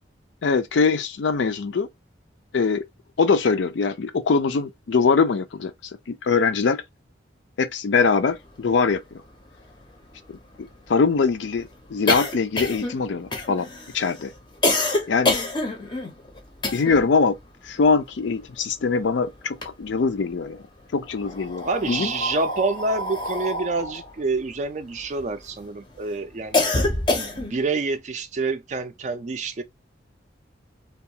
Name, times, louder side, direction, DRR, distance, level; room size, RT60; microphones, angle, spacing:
voice 1, 0.4-1.9 2.5-2.8 3.2-6.8 7.6-9.2 10.3-13.7 13.9-14.3 15.1-15.4 16.7-17.4 17.6-20.6 20.9-22.1, left 4 dB, 75° left, 0.4 m, -22 dB
sound 1, 8.9-9.0 9.3-9.4 9.7-17.2 17.4-19.0 19.4-20.3 21.0-25.5 25.9-27.7, left 2 dB, 25° left, 0.5 m, -27 dB
voice 2, 21.6-26.6 27.1-29.6, right 3 dB, 40° right, 0.3 m, -27 dB
2.3 x 2.3 x 2.7 m
head